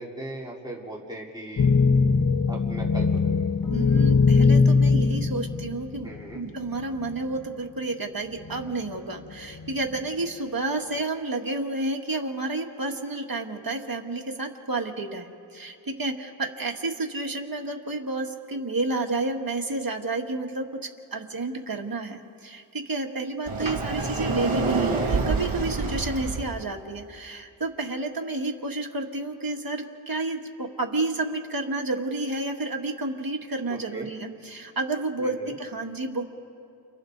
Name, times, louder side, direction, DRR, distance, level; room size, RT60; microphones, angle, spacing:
voice 1, 0.0-1.7 2.5-3.5 6.0-6.4 33.7-34.1 35.2-35.5, right 1 dB, 10° right, -4 dB, 3.6 m, -39 dB
sound 1, 1.6-6.3 7.1-7.2 8.4-8.9 9.5-10.0, left 4 dB, 45° left, 0.9 m, -21 dB
voice 2, 3.7-36.2, right 2 dB, 45° right, 2 dB, 1.8 m, -30 dB
Sliding door, 23.5-26.5, right 3 dB, 70° right, 2.6 m, -27 dB
29.5 x 29.5 x 4.0 m, 2.7 s
wide cardioid pair, 80°, 50 cm